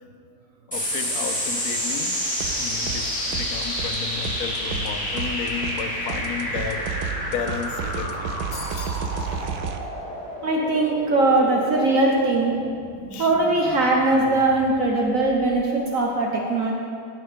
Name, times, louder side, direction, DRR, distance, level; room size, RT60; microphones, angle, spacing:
voice 1, 0.7-2.2 2.6-6.9 7.2-8.4 8.7-8.9 9.2-9.5 13.1-13.3, left 8 dB, 70° left, 9 dB, 1.1 m, -33 dB
sound 1, 0.7-15.5, equal, 5° left, 3.0 m, -30 dB
sound 2, 2.4-3.0 3.3-9.8, right 7 dB, 75° right, 1.2 m, -32 dB
sound 3, 8.5-9.1, left 3 dB, 45° left, 1.4 m, -38 dB
voice 2, 10.4-12.6 13.2-16.7, right 2 dB, 55° right, -1 dB, 1.3 m, -20 dB
16.5 x 5.7 x 5.1 m, 2.3 s
omnidirectional pair, 1.7 m